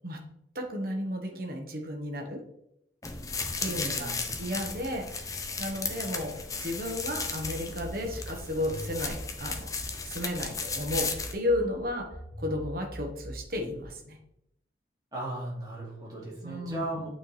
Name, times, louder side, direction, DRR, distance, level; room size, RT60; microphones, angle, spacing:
voice 1, 0.5-2.4 3.6-4.1 4.4-9.7 10.0-14.2 16.4-17.0, left 1 dB, 55° right, 3 dB, 1.3 m, -33 dB
sound 1, 3.0-11.3, left 4 dB, 20° left, 0.6 m, -35 dB
voice 2, 3.7-4.3 15.1-17.1, right 1 dB, 20° right, -5 dB, 2.4 m, -36 dB
sound 2, 7.4-10.4 10.8-13.8, equal, ahead, 1.2 m, -43 dB
8.6 x 4.5 x 3.3 m, 0.80 s
head